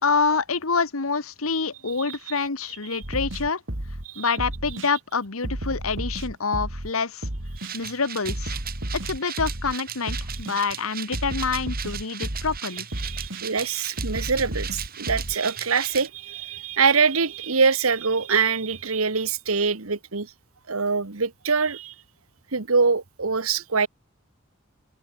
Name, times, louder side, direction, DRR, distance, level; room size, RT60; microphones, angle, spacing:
voice 1, 0.0-3.6 4.1-7.3 7.7-8.6 9.0-12.9, left 4 dB, 80° left, 1.5 m, -26 dB
sound 1, 3.0-4.1 4.4-4.9 5.4-6.9 7.2-7.7 8.3-9.7 10.1-10.6 11.1-12.6 12.9-13.4 14.0-15.4, right 1 dB, 60° right, 3.1 m, -32 dB
sound 2, 7.6-16.1, right 9 dB, 45° right, 5.1 m, -37 dB
voice 2, 13.0-20.3 20.7-21.9 22.5-23.9, right 5 dB, 85° right, 1.6 m, -24 dB
head